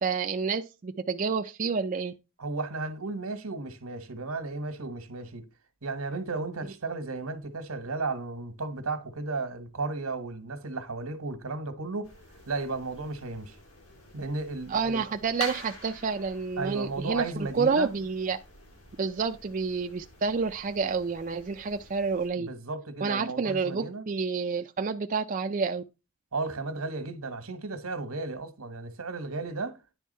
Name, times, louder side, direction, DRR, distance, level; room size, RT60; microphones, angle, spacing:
voice 1, 0.0-2.1 14.7-18.4 19.0-22.5 23.0-25.8, right 5 dB, 35° right, 0.4 m, -29 dB
voice 2, 2.4-5.4 5.8-12.1 12.5-13.6 14.1-15.0 16.6-17.9 22.4-24.1 26.3-29.8, right 3 dB, 85° right, 1.5 m, -34 dB
sound 1, 12.0-22.3, left 3 dB, 75° left, 3.3 m, -48 dB
10.0 x 3.6 x 5.5 m
head